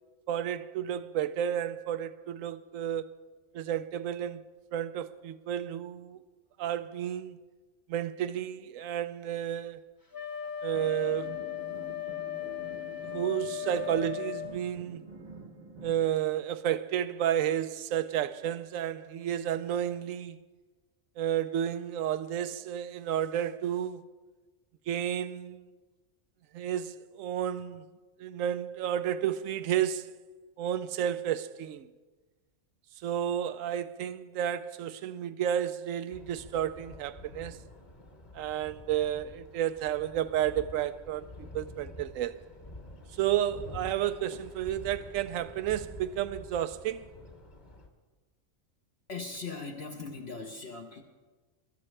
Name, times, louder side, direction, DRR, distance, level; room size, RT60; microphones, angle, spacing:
voice 1, 0.3-3.1 3.5-4.4 4.7-6.2 6.6-7.4 7.9-9.9 10.6-11.4 11.7-11.8 13.1-15.1 15.8-20.4 21.2-24.0 24.9-25.7 26.5-27.9 28.2-30.1 30.6-31.9 33.0-37.6 38.3-42.4 43.1-47.1, right 10 dB, 85° right, 1.0 m, -31 dB
Wind instrument woodwind instrument, 10.1-14.6, left 11 dB, 20° left, 0.8 m, -37 dB
sound 1, 10.7-16.1, right 3 dB, 40° right, 0.9 m, -48 dB
sound 2, 36.1-47.9, left 1 dB, 35° left, 1.4 m, -48 dB
voice 2, 49.1-51.0, left 4 dB, 55° left, 1.2 m, -39 dB
23.5 x 13.0 x 3.3 m
omnidirectional pair, 1.3 m